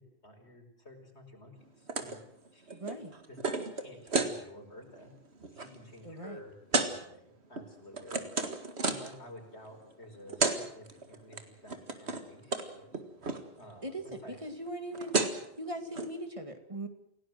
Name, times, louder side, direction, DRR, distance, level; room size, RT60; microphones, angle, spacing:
voice 1, 0.0-2.2 2.5-3.0 3.3-5.1 5.5-7.2 7.5-8.2 8.8-13.0 13.6-13.9 14.2-14.4, left 1 dB, 80° left, 3 dB, 5.5 m, -52 dB
sound 1, 1.9-2.2 2.5-4.3 4.8-5.1 5.4-5.7 6.7-6.9 7.6-9.2 10.0-10.1 10.3-10.6 10.9-11.4 11.7-12.3 12.5-12.7 12.9-13.4 14.7-14.8 14.9-15.5 15.9-16.1, right 3 dB, 75° right, 2.3 m, -32 dB
voice 2, 2.7-3.1 6.0-6.4 13.8-15.2 15.6-16.9, right 1 dB, 30° right, 6 dB, 2.3 m, -40 dB
28.0 x 17.5 x 7.8 m, 0.74 s
omnidirectional pair, 1.1 m